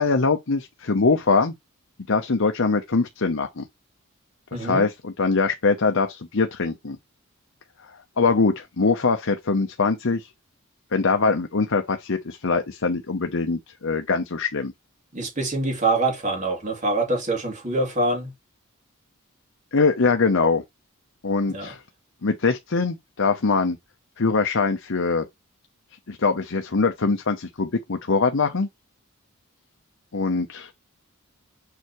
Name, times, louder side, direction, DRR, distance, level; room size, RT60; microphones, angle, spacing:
voice 1, 0.0-1.5 2.1-3.7 4.5-7.0 8.2-10.3 10.9-14.7 19.7-20.6 21.2-21.8 22.2-23.8 24.2-25.3 26.1-28.7 30.1-30.7, left 4 dB, 60° left, 0.8 m, -22 dB
voice 2, 4.5-4.9 15.1-18.3 21.5-21.7, right 2 dB, 35° right, 2.9 m, -25 dB
6.9 x 4.6 x 3.1 m
head